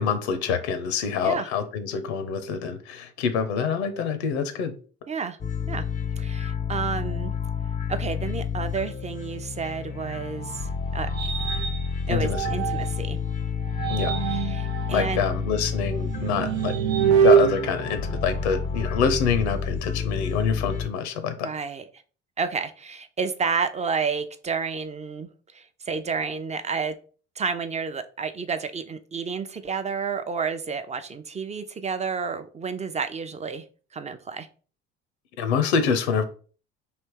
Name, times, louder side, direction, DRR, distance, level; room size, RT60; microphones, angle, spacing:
voice 1, 0.0-4.7 12.1-12.5 13.9-14.1 14.9-16.7 17.1-21.5 35.4-36.2, left 6 dB, 75° left, 10 dB, 0.7 m, -26 dB
voice 2, 5.1-5.4 5.7-5.8 6.2-7.3 7.9-11.1 12.1-13.2 14.3-15.2 21.4-21.8 22.4-27.0 27.4-33.6 33.9-34.5, right 5 dB, 20° right, 10 dB, 0.5 m, -30 dB
sound 1, 5.4-20.9, left 6 dB, 25° left, 0.5 m, -30 dB
sound 2, 10.0-13.1 13.6-18.8, right 8 dB, 80° right, 0.6 m, -26 dB
3.3 x 2.9 x 4.6 m, 0.39 s
hypercardioid pair, 60°, 34 cm